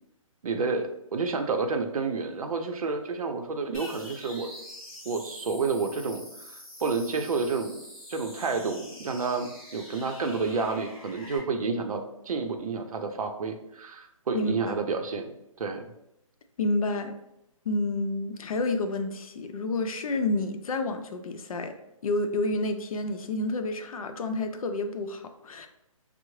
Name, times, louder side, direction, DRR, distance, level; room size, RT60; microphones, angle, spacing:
voice 1, 0.4-4.5 5.0-7.8 8.1-15.8, right 4 dB, 85° right, 5 dB, 0.5 m, -30 dB
sound 1, 3.7-11.4, left 1 dB, 5° left, 0.5 m, -45 dB
voice 2, 14.3-14.8 16.6-17.2 17.7-21.7 22.0-25.7, left 2 dB, 80° left, 7 dB, 0.5 m, -29 dB
3.5 x 2.0 x 3.1 m, 0.84 s
hypercardioid pair, 170°, 18 cm